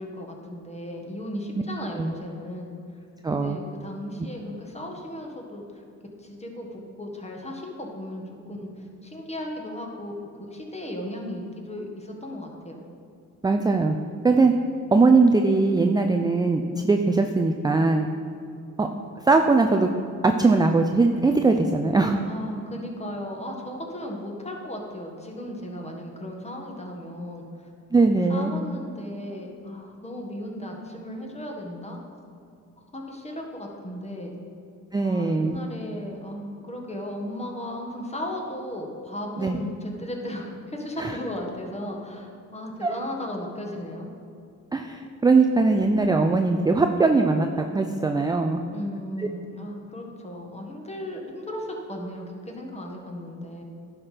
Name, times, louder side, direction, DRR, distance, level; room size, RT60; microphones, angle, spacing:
voice 1, 0.0-2.7 3.3-5.7 6.2-10.1 10.5-12.8 22.2-27.7 28.3-32.0 32.9-34.4 35.0-44.1 48.7-53.6, left 1 dB, 20° left, 1 dB, 1.7 m, -36 dB
voice 2, 3.2-3.6 13.4-14.0 14.2-14.5 14.9-18.1 18.8-18.9 19.3-19.9 20.2-22.2 27.9-28.5 34.9-35.6 39.4-39.6 41.0-41.2 42.8-43.0 44.7-48.6 49.2-49.3, right 3 dB, 15° right, 5 dB, 0.4 m, -20 dB
10.5 x 5.8 x 5.1 m, 2.5 s
cardioid pair, 90°, 30 cm